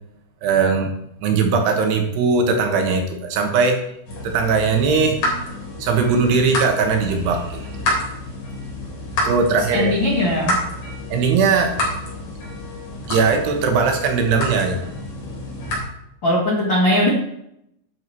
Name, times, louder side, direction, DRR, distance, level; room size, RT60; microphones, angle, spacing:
voice 1, 0.4-0.9 1.2-3.8 4.2-5.2 5.8-7.7 9.2-9.9 11.1-11.8 13.1-14.8, right 5 dB, 70° right, 3 dB, 3.3 m, -19 dB
sound 1, 4.1-15.8, left 1 dB, 45° left, 4.7 m, -29 dB
voice 2, 9.7-10.6 16.2-17.1, left 1 dB, 75° left, -3 dB, 1.0 m, -19 dB
11.0 x 7.1 x 4.6 m, 0.77 s
omnidirectional pair, 5.2 m